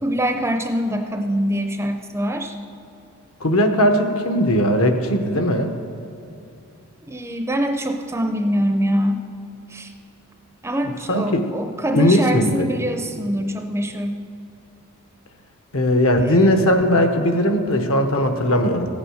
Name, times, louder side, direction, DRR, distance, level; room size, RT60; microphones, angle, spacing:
voice 1, 0.0-2.5 7.1-9.3 9.7-9.9 10.6-14.2 16.2-16.5, equal, 10° right, 6 dB, 0.5 m, -24 dB
voice 2, 3.4-5.7 11.1-11.5 11.9-12.7 15.7-18.9, equal, 70° left, 6 dB, 1.1 m, -18 dB
15.0 x 8.7 x 6.5 m, 2.6 s
head